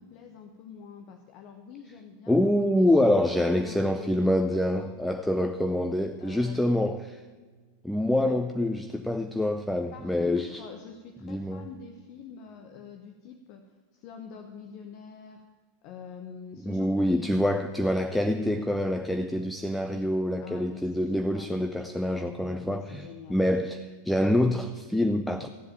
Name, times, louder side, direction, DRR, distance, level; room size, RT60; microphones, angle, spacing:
voice 1, 0.0-5.0 6.2-6.8 8.2-8.4 9.9-15.5 15.8-17.6 19.8-21.7 22.4-23.5, left 6 dB, 40° left, 5 dB, 1.0 m, -46 dB
voice 2, 2.3-7.0 7.8-10.5 11.2-11.6 16.7-25.5, left 1 dB, 5° left, 8 dB, 0.6 m, -26 dB
15.0 x 7.8 x 8.9 m, 1.4 s
figure-of-eight pair, 90°, 0 cm